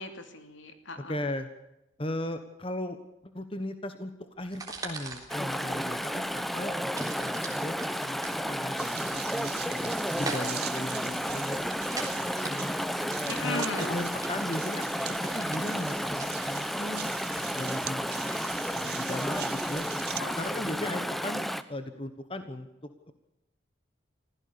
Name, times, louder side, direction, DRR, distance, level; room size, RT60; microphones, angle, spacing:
voice 1, 0.0-1.3 13.3-14.0 20.2-20.6, left 2 dB, 75° left, 7 dB, 2.9 m, -37 dB
voice 2, 1.1-1.5 2.0-6.9 7.2-7.7 8.0-11.7 12.2-12.8 13.4-14.8 15.2-18.1 18.7-23.1, left 1 dB, 30° left, 9 dB, 1.3 m, -37 dB
sound 1, 4.4-20.7, right 3 dB, 20° right, 3.5 m, -44 dB
Chatter / Stream, 5.3-21.6, equal, ahead, 0.8 m, -32 dB
sound 2, 8.8-20.2, right 12 dB, 55° right, 0.7 m, -42 dB
25.0 x 16.0 x 7.0 m, 0.89 s
head